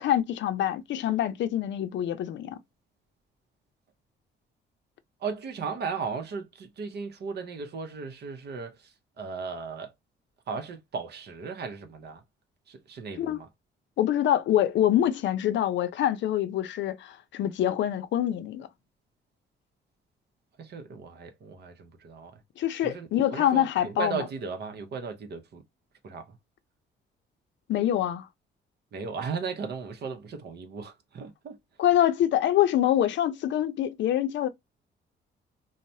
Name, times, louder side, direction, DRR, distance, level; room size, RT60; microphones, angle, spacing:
voice 1, 0.0-2.6 13.2-13.4 14.0-18.7 22.6-24.2 27.7-28.3 31.8-34.5, left 11 dB, 65° left, 0.5 m, -25 dB
voice 2, 5.2-9.9 10.5-12.2 12.7-13.5 20.6-22.4 22.8-25.6 26.0-26.4 28.9-31.6, right 5 dB, 55° right, 0.7 m, -36 dB
3.1 x 2.1 x 2.6 m
cardioid pair, 90°, 20 cm